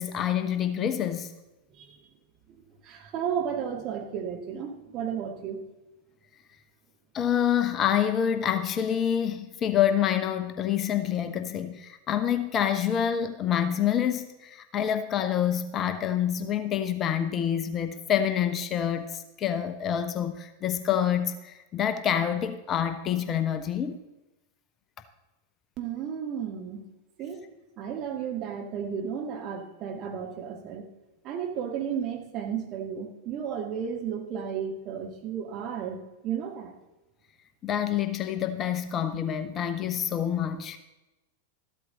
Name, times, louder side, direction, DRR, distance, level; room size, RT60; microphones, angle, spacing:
voice 1, 0.0-1.3 7.1-24.0 37.6-40.8, left 9 dB, 30° left, 0.8 m, -27 dB
voice 2, 1.7-2.0 2.8-5.6 25.8-26.8 27.2-27.5 27.8-30.9 31.2-36.7, right 8 dB, 35° right, 2.0 m, -33 dB
14.0 x 12.0 x 4.0 m
figure-of-eight pair, 90°, 0 cm